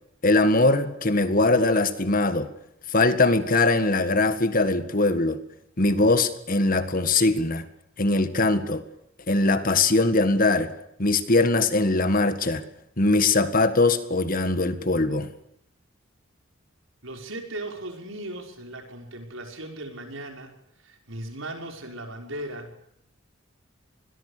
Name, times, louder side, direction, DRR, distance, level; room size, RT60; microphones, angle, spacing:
voice 1, 0.2-2.5 2.9-5.4 5.8-7.7 8.0-8.8 9.3-10.7 11.0-12.6 13.0-15.3, left 2 dB, 45° left, 11 dB, 1.8 m, -21 dB
voice 2, 17.0-20.5 20.8-22.8, right 1 dB, 85° right, 3 dB, 5.9 m, -37 dB
26.5 x 21.5 x 6.8 m, 0.75 s
head